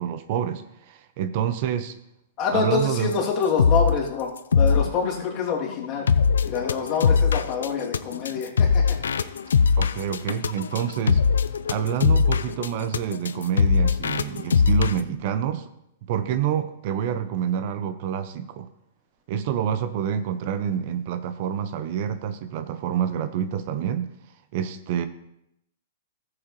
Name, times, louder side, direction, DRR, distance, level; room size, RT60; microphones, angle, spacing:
voice 1, 0.0-1.9 2.5-3.2 9.8-11.2 11.7-15.7 16.0-18.7 19.3-24.1 24.5-25.1, right 9 dB, 50° right, 11 dB, 0.7 m, -27 dB
voice 2, 2.4-6.1 6.5-9.0, left 5 dB, 35° left, -3 dB, 2.8 m, -26 dB
sound 1, 3.1-3.2 3.4-4.0 4.4-15.0, left 6 dB, 85° left, 0.5 m, -21 dB
13.5 x 7.8 x 3.2 m, 0.82 s
hypercardioid pair, 125°, 0 cm